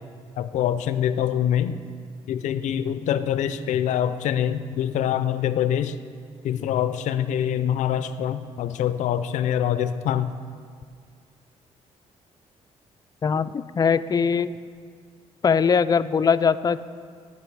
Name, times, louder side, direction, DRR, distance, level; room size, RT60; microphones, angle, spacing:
voice 1, 0.4-1.8 2.3-6.0 6.4-10.3, left 10 dB, 85° left, 12 dB, 0.5 m, -25 dB
voice 2, 13.2-14.5 15.4-16.8, left 6 dB, 30° left, 13 dB, 0.4 m, -21 dB
17.0 x 5.8 x 4.7 m, 2.1 s
cardioid pair, 95°, 12 cm